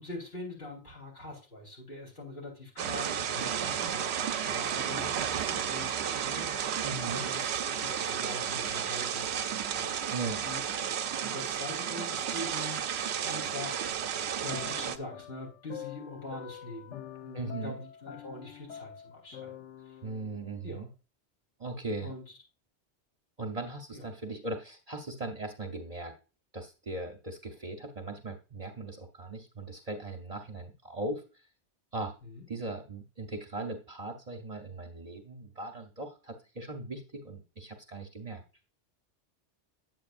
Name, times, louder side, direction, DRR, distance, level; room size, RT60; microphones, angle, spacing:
voice 1, 0.0-6.7 7.1-9.9 10.4-10.6 11.2-12.8 13.2-13.8 14.4-20.0 20.6-20.8 22.0-22.2 23.9-24.1 32.2-32.5, left 2 dB, 60° left, -2 dB, 3.8 m, -43 dB
sound 1, 2.8-15.0, right 8 dB, 70° right, 0.8 m, -32 dB
voice 2, 6.8-7.2 10.1-10.4 17.3-17.8 20.0-20.9 21.6-22.1 23.4-26.1 26.5-31.5 31.9-32.1 32.5-38.4, right 2 dB, 40° right, 1 dB, 0.8 m, -39 dB
sound 2, 14.5-20.9, left 9 dB, 80° left, 1.0 m, -46 dB
8.8 x 7.8 x 2.5 m, 0.33 s
omnidirectional pair, 1.2 m